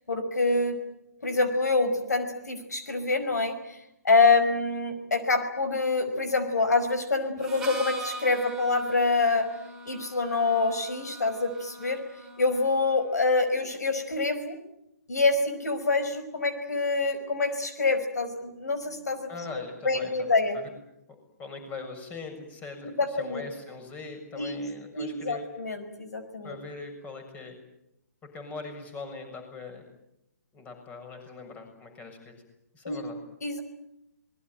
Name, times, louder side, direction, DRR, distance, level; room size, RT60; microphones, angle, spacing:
voice 1, 0.1-0.8 1.2-3.8 4.0-9.5 9.9-12.0 12.4-14.6 15.1-19.3 19.8-20.6 22.8-23.4 24.4-24.6 25.0-26.6 32.8-33.1 33.4-33.6, left 3 dB, 75° left, 9 dB, 5.4 m, -26 dB
Harmonica, 7.4-13.2, right 2 dB, 5° right, 5.3 m, -41 dB
voice 2, 19.3-20.7 21.4-25.4 26.4-27.6 28.3-29.8 30.5-32.3 32.7-33.2, left 4 dB, 15° left, 6 dB, 6.9 m, -41 dB
26.5 x 21.0 x 9.3 m, 0.85 s
figure-of-eight pair, 140°, 9 cm